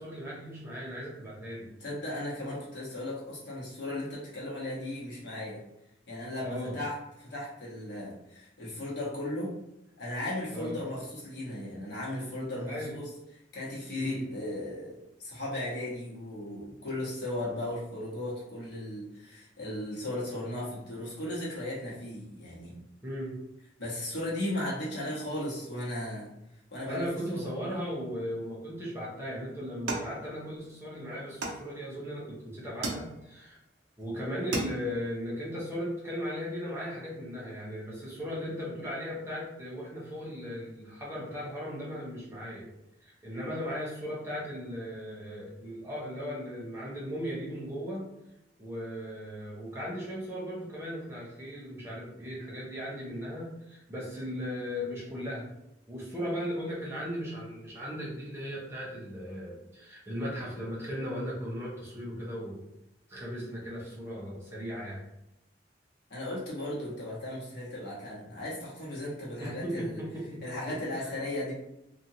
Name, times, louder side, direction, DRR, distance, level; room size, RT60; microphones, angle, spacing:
voice 1, 0.0-1.7 6.4-6.8 10.5-10.8 12.6-12.9 14.0-14.2 23.0-23.4 26.8-33.6 34.0-42.7 43.0-48.1 48.6-55.5 55.9-62.6 63.1-65.0 69.4-70.7 71.0-71.1, equal, 15° right, -6 dB, 0.7 m, -37 dB
voice 2, 1.8-5.6 6.1-9.5 10.0-13.1 13.5-22.7 23.8-26.3 26.7-27.5 66.1-70.0 70.4-71.5, left 1 dB, 65° left, -6 dB, 1.1 m, -36 dB
sound 1, 29.9-30.8 31.4-32.1 32.8-33.5 34.0-34.1 34.3-35.1, right 2 dB, 70° right, 0.5 m, -36 dB
2.8 x 2.5 x 2.7 m, 0.87 s
head